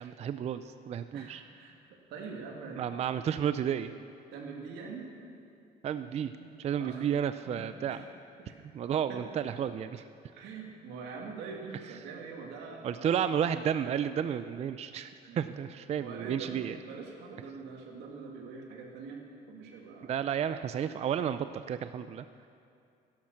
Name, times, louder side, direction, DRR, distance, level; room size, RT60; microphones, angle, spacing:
voice 1, 0.0-1.4 2.8-3.9 5.8-6.3 6.6-8.0 8.7-10.0 12.8-16.8 20.0-22.2, right 8 dB, 40° right, 11 dB, 0.4 m, -32 dB
voice 2, 1.1-1.8 2.1-2.9 4.3-5.1 6.4-7.0 7.6-8.0 8.4-8.5 9.1-9.3 10.3-13.2 15.3-15.4 16.0-20.2, right 4 dB, 85° right, 0 dB, 2.2 m, -44 dB
12.0 x 11.5 x 6.4 m, 2.4 s
cardioid pair, 110°, 17 cm